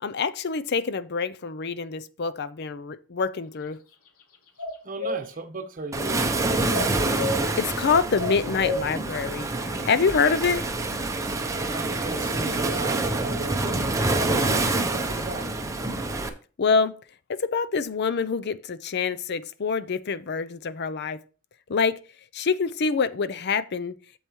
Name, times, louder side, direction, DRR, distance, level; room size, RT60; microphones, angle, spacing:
voice 1, 0.0-3.8 7.3-10.7 16.6-16.9 17.3-21.2 21.7-22.0 22.3-23.9, left 5 dB, 50° left, 0.5 m, -26 dB
sound 1, 4.6-5.2 6.7-7.4 8.2-8.8, left 2 dB, 90° left, 1.3 m, -29 dB
voice 2, 4.8-6.4 11.7-15.6, right 3 dB, 40° right, 1.0 m, -36 dB
Waves surf, 5.9-16.3, right 2 dB, 15° right, 0.8 m, -27 dB
8.7 x 7.1 x 3.1 m
head